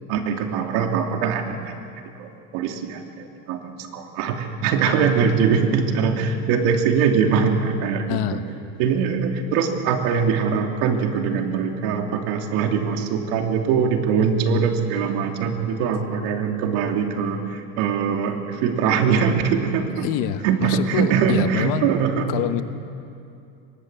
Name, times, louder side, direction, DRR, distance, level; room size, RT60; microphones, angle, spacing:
voice 1, 0.1-1.7 2.2-8.4 8.8-20.1 20.4-22.3, right 6 dB, 60° right, 4 dB, 2.9 m, -22 dB
voice 2, 8.1-8.4 20.0-21.9 22.3-22.6, left 11 dB, 55° left, 10 dB, 1.4 m, -26 dB
23.5 x 20.5 x 8.2 m, 2.6 s
supercardioid pair, 140°, 38 cm